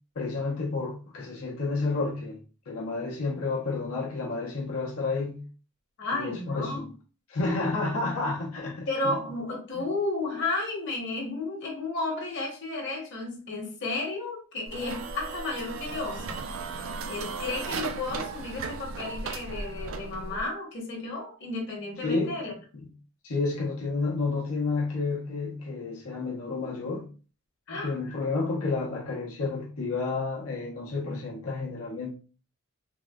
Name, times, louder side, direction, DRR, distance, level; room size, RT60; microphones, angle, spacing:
voice 1, 0.2-2.4 2.7-5.4 6.1-6.9 7.3-9.2 9.7-9.9 22.0-22.3 23.2-27.0 27.7-32.1, left 3 dB, 85° left, 0.7 m, -30 dB
voice 2, 6.0-6.9 8.9-16.4 17.1-22.5 27.7-28.0, left 2 dB, 55° left, 1.0 m, -33 dB
sound 1, 14.7-20.5, right 4 dB, 70° right, 0.4 m, -36 dB
3.7 x 2.1 x 2.3 m
head